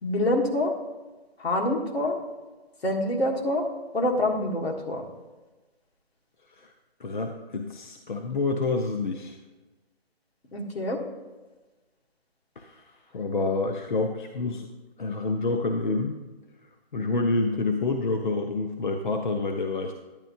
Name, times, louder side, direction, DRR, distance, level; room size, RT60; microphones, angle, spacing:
voice 1, 0.0-0.7 1.4-2.2 2.8-3.7 3.9-5.0 10.5-11.0, left 1 dB, 70° left, 0 dB, 1.8 m, -26 dB
voice 2, 7.0-9.4 12.6-12.9 13.1-14.7 15.0-16.2 16.9-19.9, left 3 dB, 50° left, 5 dB, 0.6 m, -28 dB
10.5 x 9.3 x 2.7 m, 1.2 s
hypercardioid pair, 175°, 32 cm